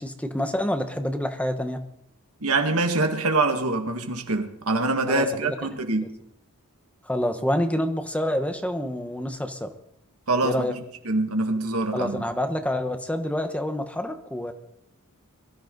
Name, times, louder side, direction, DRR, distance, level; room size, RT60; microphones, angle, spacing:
voice 1, 0.0-1.8 5.1-5.6 6.0-6.1 7.1-9.7 10.4-10.8 11.9-14.5, left 1 dB, 5° left, 7 dB, 1.1 m, -27 dB
voice 2, 2.4-6.0 10.3-10.7 11.1-12.2, right 2 dB, 80° right, 5 dB, 2.0 m, -24 dB
22.5 x 14.0 x 4.0 m, 0.74 s
head